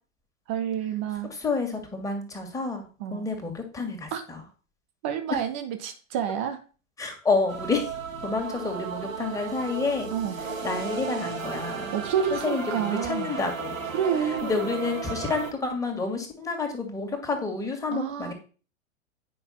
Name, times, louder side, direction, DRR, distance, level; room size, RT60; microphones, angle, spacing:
voice 1, 0.5-1.3 3.0-3.3 4.1-4.2 5.0-6.6 10.1-10.4 11.9-13.4 13.9-14.7 17.9-18.3, right 8 dB, 10° right, 8 dB, 0.3 m, -29 dB
voice 2, 1.3-4.4 7.0-7.9 8.2-10.1 10.6-12.0 12.3-13.9 14.4-18.3, left 4 dB, 10° left, 3 dB, 2.0 m, -29 dB
sound 1, 7.5-15.5, right 5 dB, 80° right, 1.5 m, -34 dB
9.4 x 5.6 x 4.3 m, 0.36 s
figure-of-eight pair, 110°, 39 cm